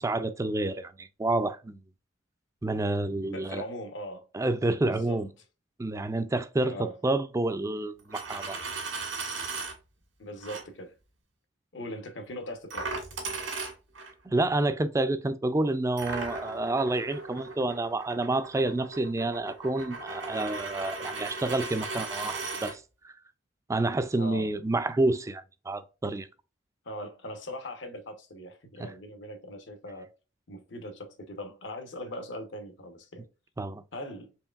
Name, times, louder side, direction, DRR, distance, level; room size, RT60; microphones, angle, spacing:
voice 1, 0.0-1.8 2.6-3.6 4.3-5.3 5.8-8.6 14.3-23.1 23.7-26.3 28.8-28.9 33.6-33.8, right 2 dB, 15° right, 0.3 m, -29 dB
voice 2, 3.2-4.3 4.8-5.2 6.6-7.0 10.2-10.9 11.7-13.0 24.2-24.5 26.8-30.1 30.5-33.3 33.9-34.3, left 1 dB, 65° left, 0.9 m, -40 dB
Coin (dropping), 8.0-9.7 10.4-10.6 12.7-14.1 16.0-22.7, right 3 dB, 85° right, 1.7 m, -37 dB
4.5 x 3.2 x 2.3 m
head